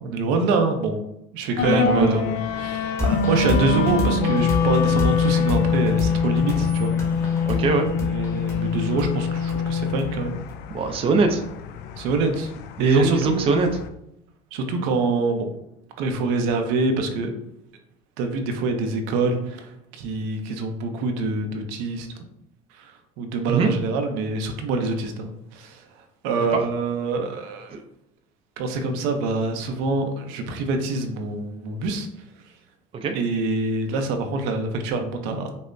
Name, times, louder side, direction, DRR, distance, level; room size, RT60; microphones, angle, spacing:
voice 1, 0.0-1.0 1.3-7.5 8.0-10.4 12.0-12.5 12.8-13.5 14.5-15.5 16.0-17.3 18.2-22.1 22.8-25.8 26.2-27.8 28.6-32.1 33.1-35.5, right 3 dB, 85° right, 5 dB, 0.6 m, -25 dB
sound 1, 1.6-13.9, left 6 dB, 60° left, 0.4 m, -25 dB
voice 2, 1.7-2.2 7.5-7.9 10.7-11.4 12.8-13.7 23.5-23.7 26.5-26.6 32.9-33.1, right 4 dB, 30° right, 5 dB, 0.4 m, -21 dB
sound 2, 3.0-10.5, left 2 dB, 15° left, 1.2 m, -29 dB
5.4 x 2.1 x 2.5 m, 0.81 s
cardioid pair, 120°, 19 cm